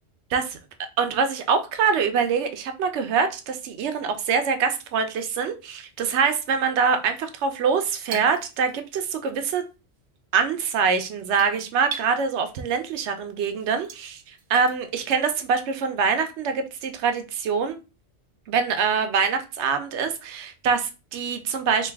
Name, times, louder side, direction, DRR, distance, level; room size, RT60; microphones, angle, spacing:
voice 1, 1.0-9.6 10.3-14.2 14.5-17.8 18.5-21.9, right 6 dB, 85° right, 8 dB, 0.9 m, -24 dB
sound 1, 6.5-9.2 9.5-15.2, right 6 dB, 60° right, 0.7 m, -41 dB
3.1 x 2.5 x 3.3 m, 0.30 s
omnidirectional pair, 1.1 m